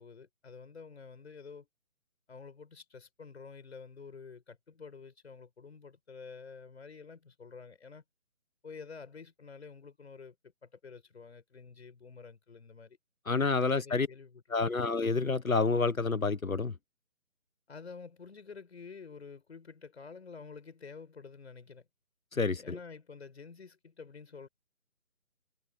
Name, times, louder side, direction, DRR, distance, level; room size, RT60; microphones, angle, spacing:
voice 1, 0.0-1.7 2.3-8.0 8.6-13.0 13.8-14.8 17.7-21.9 22.5-24.5, left 5 dB, 55° left, 7.2 m, -49 dB
voice 2, 13.3-14.1 14.5-16.7 22.3-22.8, left 4 dB, 80° left, 1.4 m, -28 dB
figure-of-eight pair, 145°, 40 cm